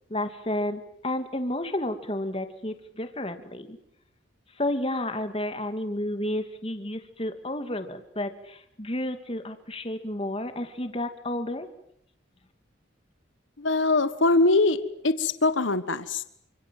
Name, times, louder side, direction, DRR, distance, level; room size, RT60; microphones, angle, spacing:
voice 1, 0.1-3.8 4.6-11.7, left 1 dB, 30° left, 8 dB, 2.4 m, -31 dB
voice 2, 13.6-14.8 15.0-16.2, left 2 dB, 75° left, 12 dB, 1.5 m, -22 dB
29.0 x 26.0 x 7.8 m, 0.71 s
head